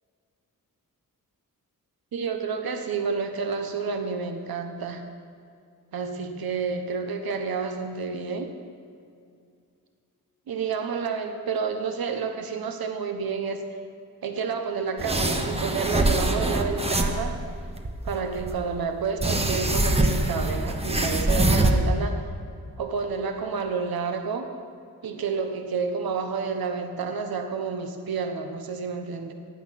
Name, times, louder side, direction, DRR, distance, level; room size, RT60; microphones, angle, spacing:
voice 1, 2.1-5.0 5.9-8.5 10.5-13.7 14.2-17.4 18.0-22.2 22.8-24.5 25.0-29.3, right 5 dB, 90° right, 6 dB, 1.2 m, -30 dB
sound 1, 15.0-17.3 17.8-18.6 19.2-21.7, right 2 dB, 15° right, 1.0 m, -24 dB
15.5 x 11.0 x 5.9 m, 2.4 s
wide cardioid pair, 135°, 35 cm